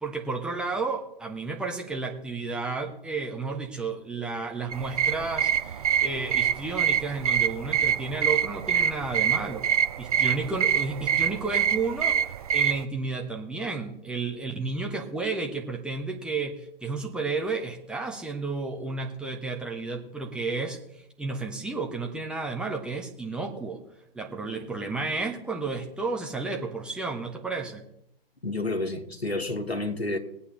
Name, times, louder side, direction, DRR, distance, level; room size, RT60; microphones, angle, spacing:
voice 1, 0.0-9.7 10.0-20.8 21.2-23.8 24.1-27.8, right 3 dB, 5° right, 1.2 m, -32 dB
sound 1, 4.7-12.8, right 8 dB, 40° right, 0.6 m, -25 dB
voice 2, 28.4-30.2, left 2 dB, 85° left, 2.0 m, -30 dB
20.5 x 8.4 x 3.9 m
figure-of-eight pair, 120°, 31 cm